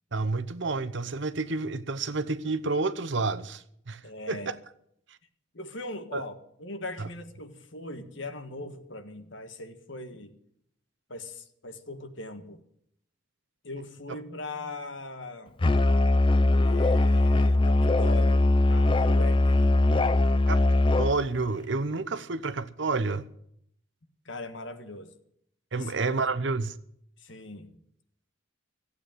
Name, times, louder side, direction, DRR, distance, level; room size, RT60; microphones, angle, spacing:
voice 1, 0.1-4.0 4.3-4.4 6.1-6.2 7.0-7.1 20.5-20.6 21.0-23.2 25.7-26.8, right 3 dB, 60° right, 0.8 m, -29 dB
voice 2, 4.0-4.5 5.5-10.3 11.1-12.6 13.6-15.5 16.6-19.9 24.2-25.1 25.7-26.1 27.2-27.8, left 2 dB, 65° left, 1.6 m, -40 dB
Musical instrument, 15.6-21.2, left 2 dB, 25° left, 0.5 m, -21 dB
15.5 x 8.5 x 9.0 m
head